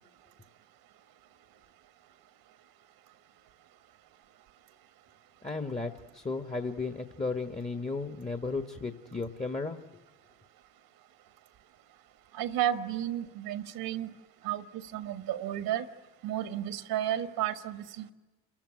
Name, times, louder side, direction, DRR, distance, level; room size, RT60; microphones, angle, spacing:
voice 1, 5.4-9.8, left 3 dB, 20° left, 7 dB, 1.4 m, -34 dB
voice 2, 12.3-14.1 14.4-15.9 16.2-18.1, right 11 dB, 70° right, 10 dB, 1.5 m, -32 dB
28.0 x 15.0 x 10.0 m, 1.2 s
hypercardioid pair, 60°, 38 cm